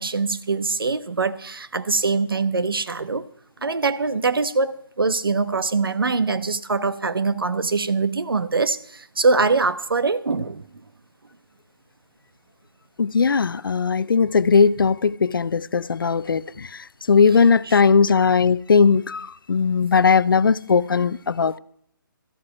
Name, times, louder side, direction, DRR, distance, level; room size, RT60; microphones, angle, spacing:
voice 1, 0.0-3.2 3.6-10.6 17.6-17.8, right 4 dB, 80° right, 1.1 m, -23 dB
voice 2, 13.0-16.7 17.1-21.6, left 5 dB, 75° left, 0.6 m, -18 dB
13.5 x 7.7 x 9.1 m
figure-of-eight pair, 145°, 12 cm